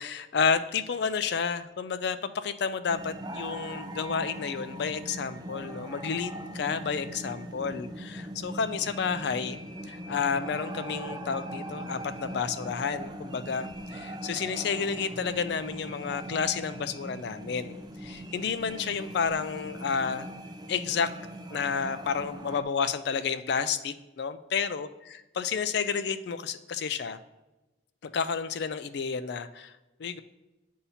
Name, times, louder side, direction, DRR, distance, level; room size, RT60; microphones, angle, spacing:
voice 1, 0.0-9.6 9.9-17.8 18.0-20.3 20.7-21.1 21.5-24.9 25.4-27.2 28.1-29.7 30.0-30.2, left 6 dB, 55° left, 12 dB, 0.3 m, -30 dB
sound 1, 2.9-22.6, right 1 dB, 20° right, 0.4 m, -40 dB
8.1 x 2.8 x 5.6 m, 1.1 s
head